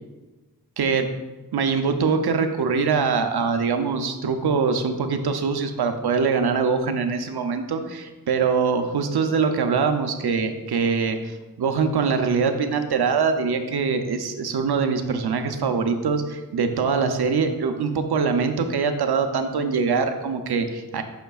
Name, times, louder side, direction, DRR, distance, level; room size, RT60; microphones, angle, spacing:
voice 1, 0.8-1.1 1.5-21.0, right 5 dB, 90° right, 7 dB, 0.6 m, -23 dB
7.9 x 5.2 x 2.3 m, 1.2 s
wide cardioid pair, 85°, 38 cm